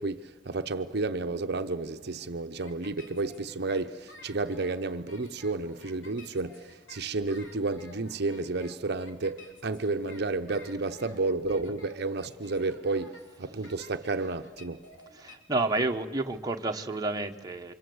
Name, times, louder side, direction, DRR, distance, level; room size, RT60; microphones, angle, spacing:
voice 1, 0.0-14.8, right 3 dB, 60° right, 0.9 m, -31 dB
sound 1, 2.6-15.3, left 2 dB, 85° left, 3.7 m, -53 dB
voice 2, 15.2-17.7, right 2 dB, 20° right, 1.2 m, -30 dB
29.5 x 25.5 x 8.0 m
head